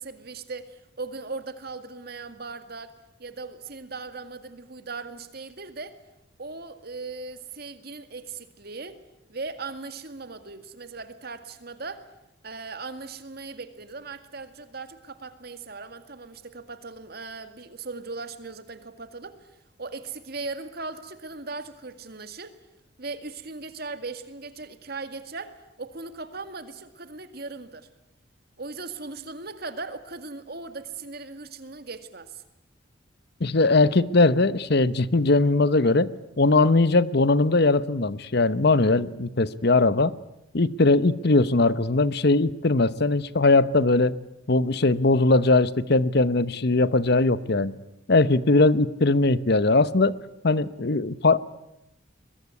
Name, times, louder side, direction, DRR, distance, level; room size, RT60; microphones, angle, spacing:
voice 1, 0.0-2.9 3.2-6.0 6.4-9.0 9.3-12.1 12.4-19.5 19.8-22.6 23.0-27.9 28.6-32.4, right 3 dB, 50° right, 2.1 m, -38 dB
voice 2, 33.4-36.1 36.4-40.1 40.5-44.1 44.5-47.8 48.1-50.2 50.4-51.4, left 3 dB, 55° left, 0.9 m, -20 dB
22.5 x 22.0 x 9.6 m
head